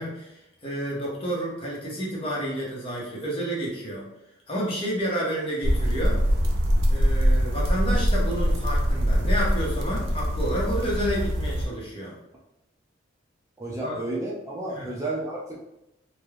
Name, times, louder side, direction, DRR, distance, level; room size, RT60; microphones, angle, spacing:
voice 1, 0.0-4.1 4.5-6.2 6.9-12.1 13.8-13.9 14.7-14.9, equal, 30° left, -4 dB, 0.7 m, -30 dB
sound 1, 5.6-11.7, equal, 80° right, 0.5 m, -23 dB
voice 2, 13.6-15.6, right 2 dB, 15° right, -5 dB, 0.4 m, -32 dB
3.2 x 2.1 x 2.3 m, 0.87 s
head